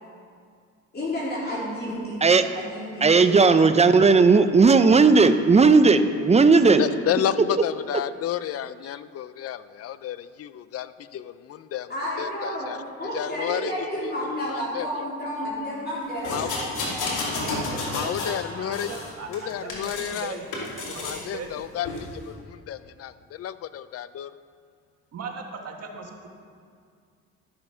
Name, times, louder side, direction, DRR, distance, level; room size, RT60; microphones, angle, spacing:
voice 1, 0.9-2.2 2.5-3.7 11.9-12.7 13.0-18.1, equal, 35° left, -6 dB, 3.1 m, -32 dB
voice 2, 3.0-6.8, right 4 dB, 20° right, 10 dB, 0.6 m, -16 dB
voice 3, 6.8-11.9 12.2-12.8 13.1-13.7 14.0-14.9 16.3-16.5 17.9-18.9 19.3-20.4 20.8-24.3, left 10 dB, 50° left, 15 dB, 0.5 m, -31 dB
sound 1, 16.2-18.4 18.7-20.2 20.5-21.2 21.8-22.0, left 2 dB, 80° left, 2.5 m, -31 dB
voice 4, 18.5-21.0 21.3-21.6 25.1-26.3, right 5 dB, 55° right, 2 dB, 1.6 m, -38 dB
12.5 x 6.6 x 5.7 m, 2.2 s
cardioid pair, 90°, 30 cm